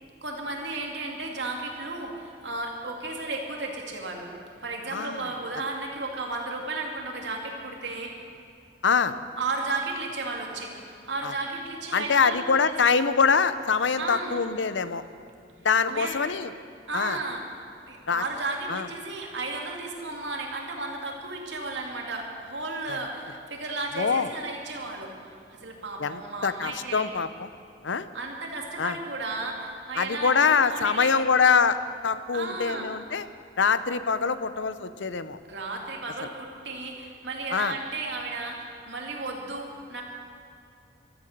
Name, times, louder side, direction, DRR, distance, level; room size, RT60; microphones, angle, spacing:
voice 1, 0.2-4.3 4.6-8.1 9.4-12.4 12.6-12.9 14.0-14.4 15.9-16.1 16.9-17.4 17.8-27.1 28.1-31.1 32.3-32.9 35.5-40.0, right 3 dB, 80° right, 1 dB, 2.6 m, -34 dB
voice 2, 4.9-5.3 8.8-9.1 11.2-11.3 11.9-15.0 15.6-16.5 16.9-17.2 18.1-18.2 18.7-18.9 22.9-23.0 24.0-24.3 26.0-27.5 27.8-28.1 28.8-29.0 30.0-31.8 32.0-33.3 33.6-35.4 36.2-36.3 37.5-37.8, left 5 dB, 90° left, 13 dB, 0.7 m, -24 dB
15.0 x 13.5 x 6.7 m, 2.5 s
head